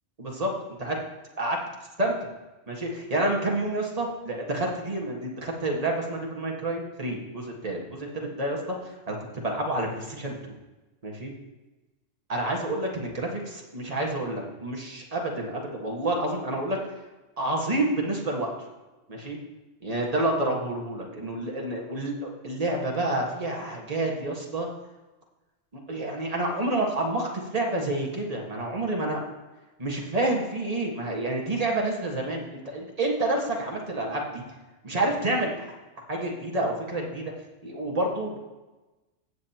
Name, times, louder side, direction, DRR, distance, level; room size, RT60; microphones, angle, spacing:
voice 1, 0.2-1.0 1.4-1.6 2.0-2.2 2.7-10.6 11.0-11.3 12.3-16.8 17.4-18.7 19.1-19.4 19.8-24.7 25.9-29.2 29.8-34.4 34.8-35.7 36.1-37.2 37.6-38.4, right 2 dB, 30° right, -1 dB, 1.6 m, -29 dB
14.5 x 7.5 x 2.9 m, 1.1 s
omnidirectional pair, 1.3 m